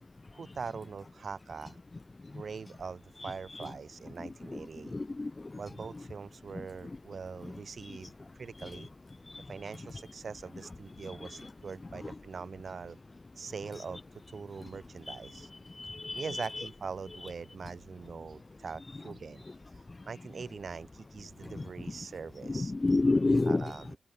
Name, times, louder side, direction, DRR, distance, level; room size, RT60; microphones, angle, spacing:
voice 1, 0.3-1.8 2.3-4.9 5.6-8.9 9.5-13.0 13.4-14.0 14.3-15.5 16.1-19.4 20.1-22.7 23.4-24.0, right 5 dB, 60° right, 3.9 m, -42 dB
voice 2, 4.9-5.3 15.8-16.5 22.6-23.7, left 2 dB, 30° left, 0.3 m, -28 dB
wide cardioid pair, 100°, 0 cm